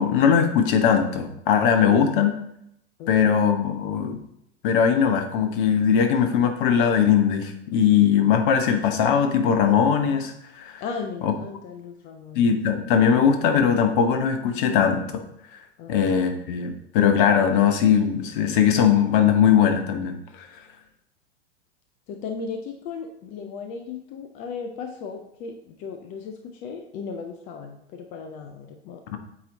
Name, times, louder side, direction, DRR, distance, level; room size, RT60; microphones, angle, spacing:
voice 1, 0.0-2.4 3.1-4.2 4.6-10.8 11.2-11.3 12.3-15.2 15.9-20.5 29.1-29.2, left 7 dB, 45° left, 7 dB, 1.0 m, -20 dB
voice 2, 1.8-2.2 3.0-3.3 10.8-12.8 15.8-16.0 22.1-29.2, left 5 dB, 25° left, 5 dB, 0.4 m, -36 dB
8.4 x 3.0 x 3.9 m, 0.76 s
figure-of-eight pair, 100°, 35 cm